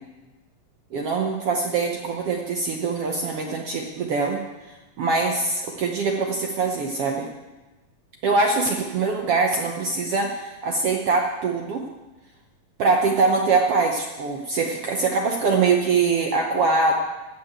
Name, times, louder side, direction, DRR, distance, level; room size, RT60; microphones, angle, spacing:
voice 1, 0.9-4.4 4.7-7.3 8.2-11.8 12.8-16.9, right 4 dB, 70° right, 2 dB, 1.4 m, -23 dB
14.5 x 5.8 x 8.9 m, 1.1 s
omnidirectional pair, 3.7 m